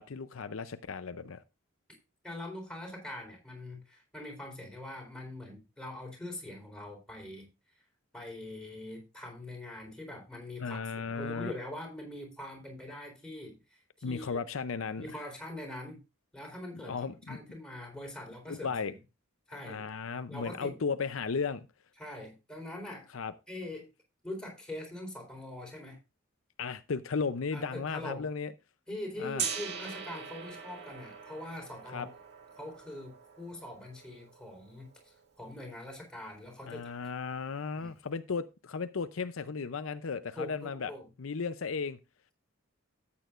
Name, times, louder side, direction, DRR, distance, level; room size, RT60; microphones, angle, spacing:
voice 1, 0.0-1.4 10.6-11.5 14.0-15.1 16.8-17.4 18.5-18.9 19.7-21.7 23.1-23.3 26.6-28.5 29.2-29.4 31.9-32.1 36.7-40.9 41.2-42.0, left 5 dB, 70° left, 0.6 m, -35 dB
voice 2, 2.2-7.5 8.1-14.4 15.0-16.0 16.3-17.0 17.3-18.9 19.5-19.9 20.3-20.8 22.0-23.1 23.5-23.9 24.2-26.0 27.5-28.2 28.9-32.1 32.6-36.8 37.7-37.9 40.3-41.1, left 1 dB, 5° left, 4.0 m, -43 dB
Gong, 29.4-35.3, right 6 dB, 55° right, 2.1 m, -42 dB
13.5 x 8.6 x 2.5 m
head